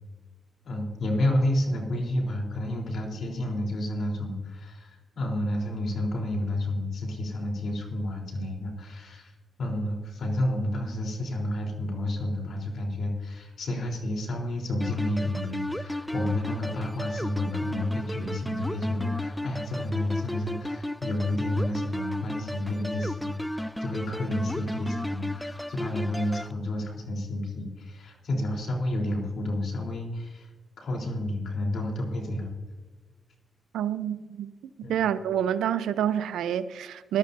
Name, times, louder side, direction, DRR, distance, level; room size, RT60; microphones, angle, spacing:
voice 1, 0.6-30.5 30.8-32.5 34.8-35.0, left 1 dB, 65° left, 3.7 m, -30 dB
sound 1, 14.8-26.5, left 1 dB, 5° left, 0.3 m, -34 dB
voice 2, 33.7-34.5 34.9-37.2, right 9 dB, 90° right, 0.6 m, -27 dB
19.5 x 12.5 x 2.7 m
cardioid pair, 70°, 0 cm